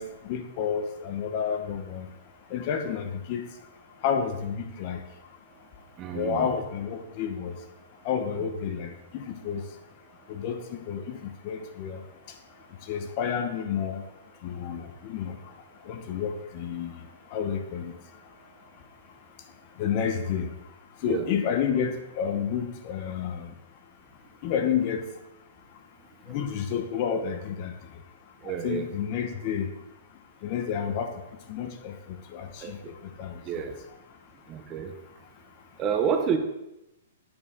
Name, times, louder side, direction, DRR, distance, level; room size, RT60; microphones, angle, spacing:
voice 1, 0.0-2.1 2.5-3.5 4.0-5.0 6.1-7.6 8.0-9.7 10.3-12.0 12.3-12.4 12.8-14.1 14.4-15.5 15.8-18.0 19.8-20.5 21.0-23.5 24.4-25.1 26.3-28.0 28.4-29.7 30.4-31.2 31.5-33.7, left 7 dB, 35° left, 7 dB, 0.9 m, -30 dB
voice 2, 6.0-6.5 21.0-21.3 28.4-28.9 32.6-32.7 33.4-33.7 34.5-34.9 35.8-36.4, right 7 dB, 25° right, 6 dB, 0.7 m, -28 dB
8.8 x 6.5 x 3.7 m, 0.91 s
hypercardioid pair, 160°, 0 cm